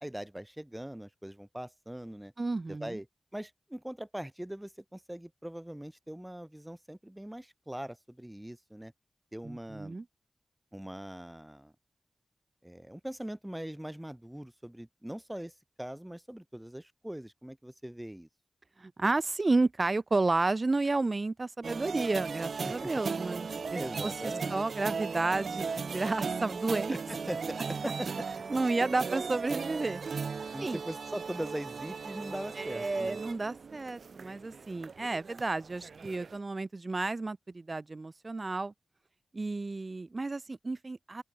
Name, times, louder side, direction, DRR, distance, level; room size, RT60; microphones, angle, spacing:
voice 1, 0.0-2.3 2.7-3.1 3.3-8.9 9.3-10.0 10.7-11.7 12.6-15.5 15.8-18.3 22.6-22.9 23.7-24.7 26.9-28.4 30.5-33.3, right 1 dB, 10° right, 0.5 m, -41 dB
voice 2, 2.4-3.0 9.4-10.0 18.8-27.0 28.5-30.0 30.6-30.8 32.6-38.7 39.3-41.2, right 3 dB, 45° right, 1.0 m, -31 dB
sound 1, 21.6-36.4, right 5 dB, 80° right, 0.3 m, -37 dB
open air
cardioid pair, 50°, 0 cm